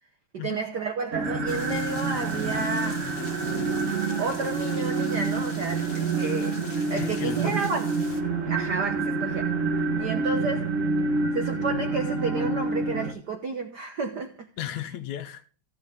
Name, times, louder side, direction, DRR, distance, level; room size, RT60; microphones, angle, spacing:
voice 1, 0.3-3.2 4.2-6.6 6.9-8.0 8.5-9.5 10.0-10.7 11.3-14.5, right 4 dB, 80° right, 0.9 m, -31 dB
sound 1, 1.1-13.1, right 3 dB, 40° right, 1.2 m, -27 dB
sound 2, 1.5-8.2, left 3 dB, 50° left, 0.5 m, -44 dB
voice 2, 7.0-7.6 14.6-15.5, left 11 dB, 80° left, 2.3 m, -34 dB
15.0 x 6.9 x 3.6 m
omnidirectional pair, 3.4 m